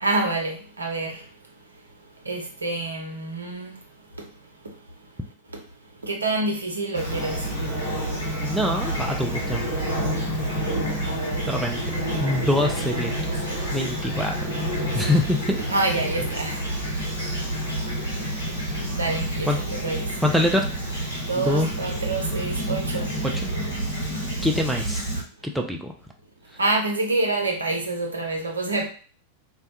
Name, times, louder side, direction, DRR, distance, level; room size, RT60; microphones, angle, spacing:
voice 1, 0.0-1.2 2.3-3.7 6.0-7.4 11.0-11.4 15.0-15.2 15.7-16.6 18.9-20.0 21.2-23.2 26.6-28.9, right 2 dB, 75° right, 0.6 m, -27 dB
Fowl / Chirp tweet, 6.9-25.2, right 1 dB, 85° left, 0.9 m, -28 dB
voice 2, 8.4-9.7 11.5-11.8 12.2-13.1 13.7-14.5 14.9-15.6 19.5-19.6 20.2-20.7 21.4-21.7 23.3-23.5 24.4-25.1 25.4-25.9, left 1 dB, ahead, 0.3 m, -24 dB
2.2 x 2.1 x 2.8 m
figure-of-eight pair, 90°, 0 cm